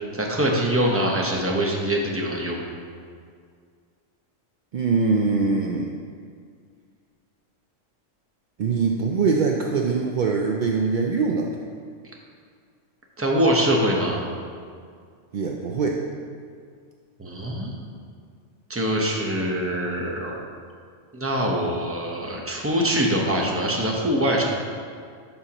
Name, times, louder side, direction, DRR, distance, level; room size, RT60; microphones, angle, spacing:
voice 1, 0.1-2.6 13.2-14.2 17.2-17.7 18.7-20.4 21.1-24.4, equal, 15° right, -1 dB, 0.8 m, -23 dB
voice 2, 4.7-5.9 8.6-11.5 15.3-16.0, right 4 dB, 70° right, 1 dB, 0.4 m, -23 dB
11.0 x 5.5 x 2.9 m, 2.1 s
omnidirectional pair, 1.3 m